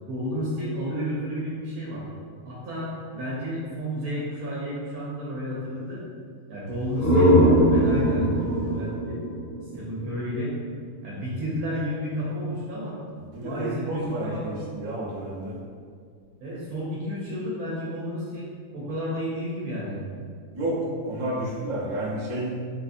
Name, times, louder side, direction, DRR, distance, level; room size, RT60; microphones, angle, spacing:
voice 1, 0.1-2.0 2.4-6.0 6.5-9.2 9.7-10.5 11.0-13.0 13.4-14.5 16.4-20.0, equal, 90° right, -7 dB, 1.2 m, -31 dB
sound 1, 6.7-10.4, equal, 45° left, 0.9 m, -21 dB
voice 2, 13.3-15.5 20.5-22.5, right 1 dB, 45° right, -7 dB, 0.6 m, -30 dB
3.4 x 2.5 x 2.5 m, 2.1 s
omnidirectional pair, 1.5 m